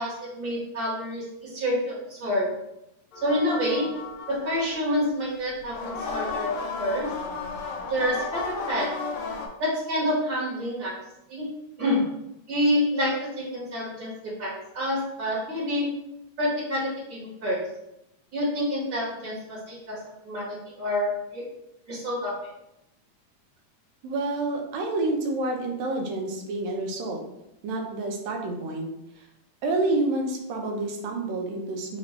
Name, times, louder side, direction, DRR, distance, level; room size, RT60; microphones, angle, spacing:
voice 1, 0.0-2.5 3.2-3.9 4.3-6.5 6.8-7.1 7.9-8.9 9.6-10.9 11.3-11.5 11.8-12.0 12.5-14.1 14.4-15.9 16.4-17.6 18.3-20.0 20.2-21.4 21.9-22.5, equal, 40° right, -9 dB, 1.7 m, -27 dB
sound 1, 3.1-4.9 5.6-9.5, left 4 dB, 75° left, 1.8 m, -34 dB
voice 2, 24.0-27.2 27.6-28.9 29.2-29.3 29.6-32.0, right 2 dB, 75° right, 2 dB, 1.9 m, -28 dB
5.1 x 2.6 x 3.1 m, 0.86 s
omnidirectional pair, 3.4 m